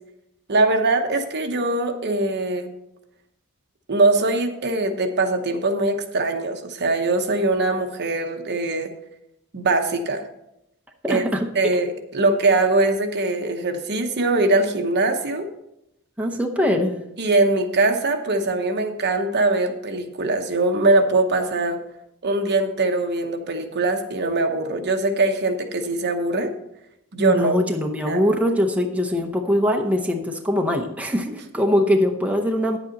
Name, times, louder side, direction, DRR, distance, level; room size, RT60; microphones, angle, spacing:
voice 1, 0.5-2.7 3.9-8.9 9.5-10.2 11.1-11.2 11.5-15.5 17.2-21.8 22.2-26.5 27.1-27.5 28.1-28.2, right 2 dB, 50° right, 6 dB, 1.0 m, -22 dB
voice 2, 11.0-11.5 16.2-17.0 27.2-32.8, left 1 dB, 5° right, 2 dB, 0.7 m, -22 dB
9.7 x 8.1 x 3.9 m, 0.83 s
head